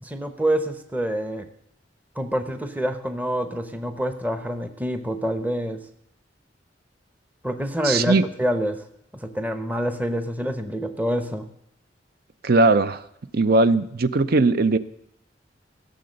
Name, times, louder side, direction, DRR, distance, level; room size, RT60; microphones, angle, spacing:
voice 1, 0.0-1.5 2.2-5.8 7.4-8.8 9.1-11.5, equal, 10° right, 8 dB, 0.8 m, -26 dB
voice 2, 7.8-8.2 12.4-13.0 13.3-14.8, right 3 dB, 55° right, 13 dB, 0.6 m, -19 dB
16.0 x 6.8 x 6.4 m, 0.77 s
head